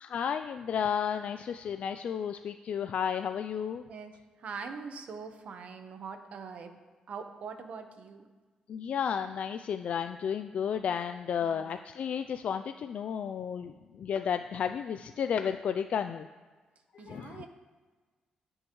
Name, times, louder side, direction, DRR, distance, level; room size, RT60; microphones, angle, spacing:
voice 1, 0.0-3.8 8.7-16.3 16.9-17.4, left 7 dB, 60° left, 8 dB, 0.3 m, -32 dB
voice 2, 3.9-6.8 7.1-8.3 11.4-11.7 17.0-17.5, right 5 dB, 65° right, 6 dB, 1.0 m, -43 dB
18.5 x 6.4 x 3.1 m, 1.4 s
cardioid pair, 115°, 2 cm